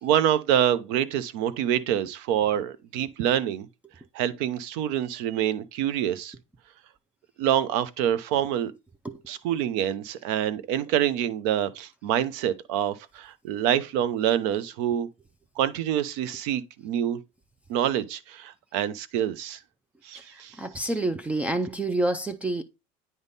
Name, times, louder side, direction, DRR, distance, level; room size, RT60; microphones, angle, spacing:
voice 1, 0.0-3.7 4.1-6.3 7.4-8.7 9.3-15.1 15.6-17.2 17.7-19.6 20.0-20.9, right 10 dB, 85° right, 0.7 m, -26 dB
voice 2, 20.6-22.6, right 2 dB, 10° right, 0.4 m, -27 dB
9.4 x 3.6 x 4.0 m
cardioid pair, 145°, 15 cm